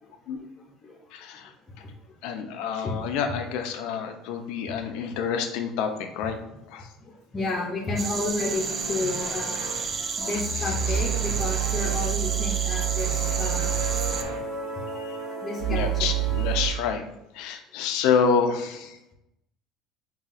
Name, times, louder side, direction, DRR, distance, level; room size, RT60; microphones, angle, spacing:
voice 1, 0.0-1.0 1.3-1.9 2.3-2.9 4.3-4.8 5.1-5.2 7.0-9.7 10.2-13.8 15.4-16.1, left 2 dB, 20° left, -2 dB, 0.7 m, -33 dB
voice 2, 1.1-1.5 2.2-6.4 6.7-6.9 10.2-11.0 13.4-13.5 14.2-14.3 14.9-15.2 15.7-17.0 17.3-19.0, left 6 dB, 75° left, 5 dB, 0.5 m, -28 dB
sound 1, 8.0-14.2, right 5 dB, 35° right, 0.4 m, -31 dB
sound 2, 8.1-8.2 8.5-8.6 8.8-16.7, right 9 dB, 55° right, 1.4 m, -29 dB
sound 3, 8.3-10.0 10.7-12.2 12.7-14.5, right 4 dB, 85° right, 0.7 m, -39 dB
5.5 x 2.3 x 2.5 m, 0.88 s
cardioid pair, 120°, 0 cm